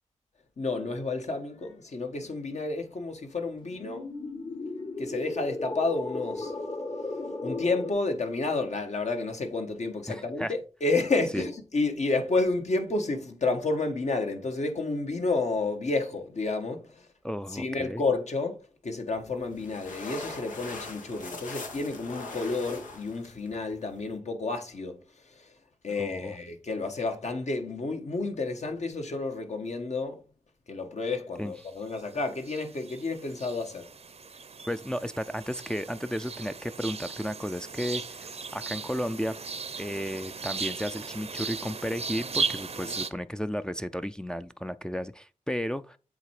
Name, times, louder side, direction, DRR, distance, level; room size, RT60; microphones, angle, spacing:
voice 1, 0.6-4.1 5.0-6.5 7.4-17.1 17.5-25.0 25.2-25.5 25.8-30.2 30.7-33.9 42.8-42.9, left 3 dB, 60° left, 1.5 m, -30 dB
sound 1, 3.6-7.9, left 2 dB, 40° left, 1.2 m, -35 dB
voice 2, 10.1-10.5 11.3-11.5 17.2-18.0 26.0-26.4 31.4-31.5 34.7-39.4 39.8-46.0, equal, 5° left, 0.5 m, -33 dB
sound 2, 19.1-24.2, left 3 dB, 90° left, 1.3 m, -42 dB
sound 3, 31.6-32.1 32.4-43.1, right 5 dB, 55° right, 0.7 m, -37 dB
7.9 x 3.3 x 4.8 m
cardioid pair, 55°, 13 cm